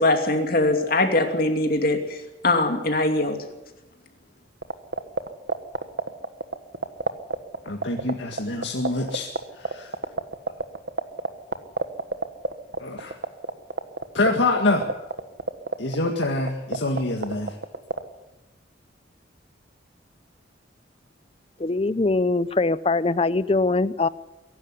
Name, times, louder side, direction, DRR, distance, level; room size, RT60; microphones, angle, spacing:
voice 1, 0.0-2.2 2.4-3.4, left 2 dB, 50° left, 4 dB, 2.8 m, -21 dB
sound 1, 4.6-18.0, right 3 dB, 65° right, 1.4 m, -25 dB
voice 2, 7.6-9.3 9.5-9.9 12.8-13.1 14.1-14.9 15.8-17.5, left 2 dB, 75° left, 0 dB, 2.0 m, -25 dB
voice 3, 21.6-24.1, left 3 dB, 30° left, 16 dB, 0.6 m, -22 dB
23.0 x 12.0 x 9.9 m, 0.99 s
head